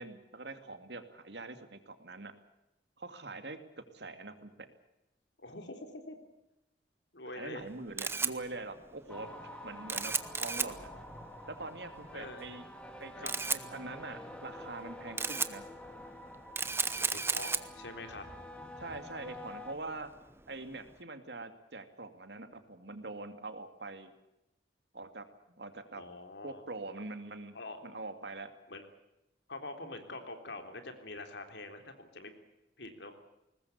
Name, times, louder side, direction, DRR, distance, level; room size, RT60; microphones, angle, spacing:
voice 1, 0.0-2.3 3.0-4.7 7.3-9.3 9.6-10.9 11.5-12.6 13.0-15.7 18.8-20.1 20.5-24.1 24.9-26.0 26.4-27.5 27.8-28.5, right 2 dB, 70° right, 8 dB, 2.5 m, -44 dB
voice 2, 5.4-6.2 7.1-7.7 12.1-12.5 13.2-13.3 17.0-18.2 25.9-26.6 27.5-27.8 28.7-28.8 29.5-32.3 32.8-33.2, left 2 dB, 75° left, 6 dB, 3.6 m, -45 dB
Camera, 7.6-21.0, right 4 dB, 15° right, 0.9 m, -37 dB
sound 1, 9.1-19.7, left 1 dB, 5° left, 2.4 m, -48 dB
sound 2, 13.4-15.9, left 1 dB, 25° left, 1.5 m, -59 dB
22.0 x 19.5 x 8.3 m, 0.90 s
head